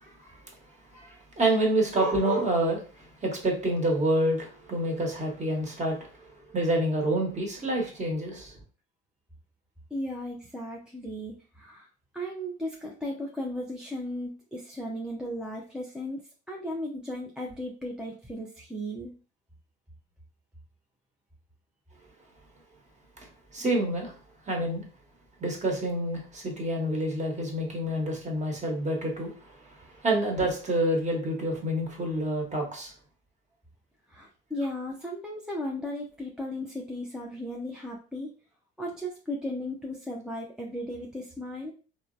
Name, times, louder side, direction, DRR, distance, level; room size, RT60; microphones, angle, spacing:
voice 1, 0.9-6.0 6.5-8.5 23.5-24.1 24.5-24.8 25.4-29.6 30.0-32.9, right 1 dB, 25° right, 0 dB, 1.1 m, -28 dB
voice 2, 9.9-11.9 12.1-16.2 16.5-19.1 34.1-38.3 38.8-41.7, left 1 dB, 5° right, -2 dB, 0.4 m, -36 dB
3.1 x 2.0 x 2.5 m, 0.37 s
hypercardioid pair, 70°, 30 cm